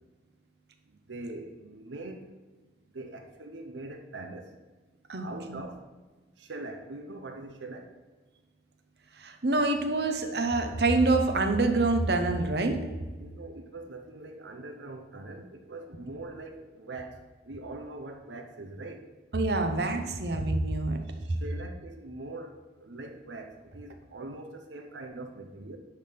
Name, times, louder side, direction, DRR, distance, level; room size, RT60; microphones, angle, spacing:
voice 1, 0.9-2.2 2.9-4.4 5.2-5.8 6.4-7.9 13.2-17.2 17.4-19.1 21.2-25.8, right 2 dB, 85° right, 5 dB, 0.8 m, -42 dB
voice 2, 5.1-5.6 9.2-12.8 19.3-21.0 21.3-21.4, right 2 dB, 60° right, 5 dB, 0.9 m, -26 dB
9.9 x 3.6 x 5.9 m, 1.3 s
head